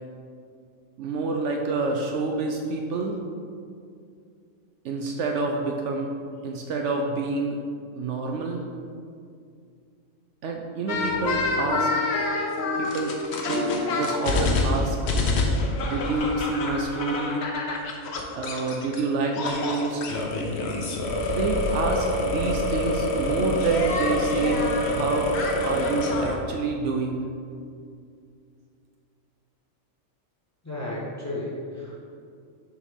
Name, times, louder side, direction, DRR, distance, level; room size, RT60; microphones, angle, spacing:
voice 1, 1.0-3.2 4.8-6.1 6.4-7.6 7.9-8.7 10.4-11.9 12.7-15.1 15.8-17.5 18.4-20.2 21.2-25.3 25.6-27.3, right 3 dB, 70° right, 2 dB, 0.8 m, -28 dB
sound 1, 10.9-19.0 19.3-26.4, left 2 dB, 60° left, 0.9 m, -26 dB
voice 2, 30.6-32.0, left 1 dB, 15° left, -6 dB, 1.0 m, -33 dB
6.9 x 4.6 x 3.5 m, 2.3 s
omnidirectional pair, 1.4 m